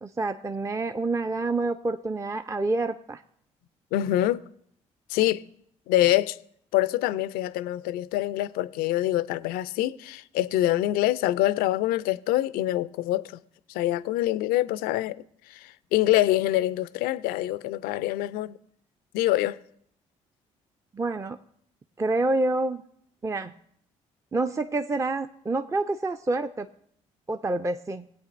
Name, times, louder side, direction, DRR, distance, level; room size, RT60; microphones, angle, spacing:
voice 1, 0.0-3.2 20.9-21.4 22.0-22.8 23.2-23.5 24.3-26.7 27.3-28.1, right 2 dB, 20° right, 0.5 m, -27 dB
voice 2, 3.9-4.5 5.1-5.4 5.9-6.4 6.7-13.4 13.7-15.2 15.5-18.6 19.1-19.6, left 14 dB, 75° left, 0.4 m, -25 dB
19.0 x 8.4 x 2.5 m
hypercardioid pair, 50°, 16 cm